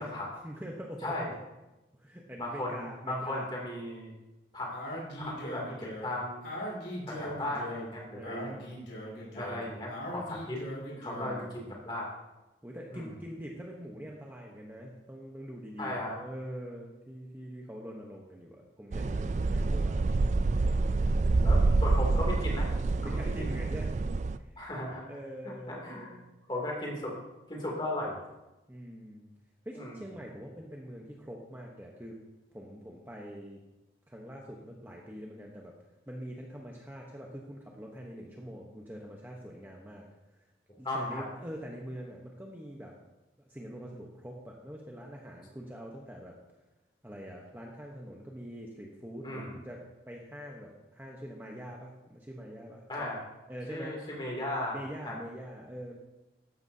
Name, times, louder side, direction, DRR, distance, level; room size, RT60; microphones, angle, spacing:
voice 1, 0.4-1.1 2.0-3.5 8.1-8.7 11.1-11.8 12.6-20.0 23.0-23.9 24.4-24.6 25.1-26.3 28.7-29.3 29.6-32.2 32.5-33.6 34.1-35.7 36.1-40.1 40.4-40.5 40.8-42.9 43.5-46.3 47.0-53.1 53.5-54.0 54.7-56.0, equal, 10° right, -1 dB, 1.0 m, -44 dB
voice 2, 1.0-1.3 2.4-4.1 4.5-4.8 5.3-6.4 7.1-8.5 9.3-10.6 11.0-12.1 12.9-13.1 15.8-16.2 21.4-23.4 24.6-25.0 25.7-26.1 26.5-27.1 27.5-28.2 29.7-30.0 40.8-41.2 49.2-49.6 52.9-53.2 53.7-55.2, left 1 dB, 25° left, -2 dB, 2.7 m, -36 dB
Speech, 4.7-11.5, equal, 80° left, 4.5 m, -40 dB
sound 1, 18.9-24.4, right 3 dB, 40° right, 0.3 m, -27 dB
14.0 x 11.0 x 2.8 m, 1.0 s
head